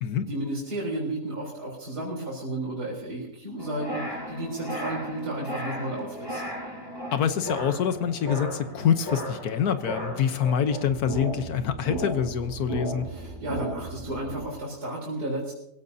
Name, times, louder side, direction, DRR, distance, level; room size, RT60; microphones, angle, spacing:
voice 1, 0.3-6.4 13.1-15.5, right 1 dB, 70° right, -6 dB, 4.4 m, -33 dB
sound 1, 3.6-14.5, right 1 dB, 15° left, 6.6 m, -35 dB
voice 2, 7.1-13.1, left 8 dB, 70° left, 10 dB, 1.4 m, -26 dB
23.0 x 16.5 x 2.8 m, 0.78 s
omnidirectional pair, 1.8 m